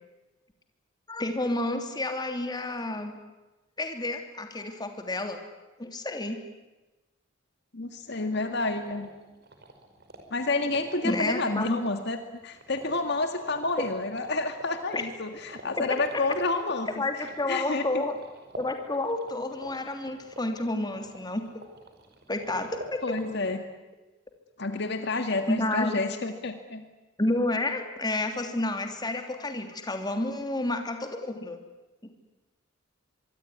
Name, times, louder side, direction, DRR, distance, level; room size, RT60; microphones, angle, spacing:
voice 1, 1.1-3.2 3.8-5.4 5.8-6.4 11.0-11.8 14.9-15.0 15.8-15.9 17.0-18.1 18.6-21.4 22.3-23.2 25.5-26.0 27.2-31.6 32.0-32.1, left 2 dB, 20° left, 5 dB, 3.0 m, -30 dB
voice 2, 7.7-9.1 10.3-12.2 12.4-16.9 17.5-18.0 23.0-23.6 24.6-26.8, left 3 dB, 55° left, 7 dB, 2.0 m, -29 dB
sound 1, 8.0-23.6, right 2 dB, 55° right, 5.0 m, -47 dB
24.5 x 23.5 x 9.8 m, 1.1 s
head